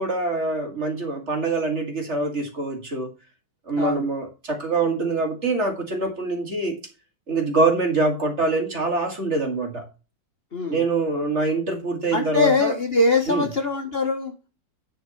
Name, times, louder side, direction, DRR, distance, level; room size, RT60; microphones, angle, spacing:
voice 1, 0.0-3.1 3.7-6.8 7.3-9.8 10.7-12.7 13.3-13.4, right 3 dB, 40° right, 3 dB, 2.1 m, -24 dB
voice 2, 3.8-4.1 10.5-10.8 12.1-14.3, left 3 dB, 35° left, 3 dB, 1.6 m, -22 dB
10.5 x 4.4 x 5.6 m, 0.32 s
omnidirectional pair, 2.0 m